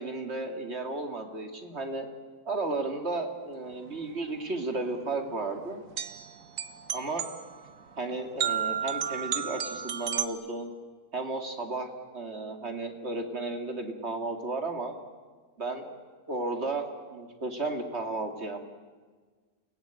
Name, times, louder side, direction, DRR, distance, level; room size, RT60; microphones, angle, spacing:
voice 1, 0.0-2.1 2.5-5.8 6.9-7.2 8.0-10.7 11.1-14.9 15.6-16.0 16.3-18.7, right 3 dB, 45° right, 5 dB, 2.6 m, -34 dB
sound 1, 3.8-10.3, right 8 dB, 65° right, 1.5 m, -33 dB
29.0 x 17.5 x 9.0 m, 1.5 s
omnidirectional pair, 1.5 m